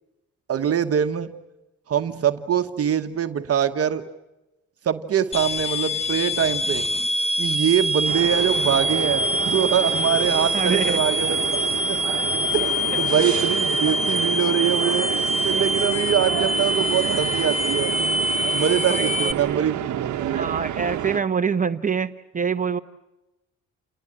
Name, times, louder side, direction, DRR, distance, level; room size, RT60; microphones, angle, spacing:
voice 1, 0.5-1.3 1.9-4.1 4.8-6.9 7.4-11.4 11.9-12.0 12.5-15.2 15.4-17.9 18.5-20.5, right 9 dB, 50° right, 7 dB, 1.2 m, -23 dB
sound 1, 5.3-19.3, equal, 20° left, 1.5 m, -24 dB
sound 2, 8.1-21.2, right 11 dB, 70° right, 1.1 m, -29 dB
voice 2, 10.5-11.0 18.8-19.6 20.3-22.8, right 6 dB, 25° right, 9 dB, 0.9 m, -25 dB
29.0 x 19.0 x 8.8 m, 1.0 s
cardioid pair, 90°, 30 cm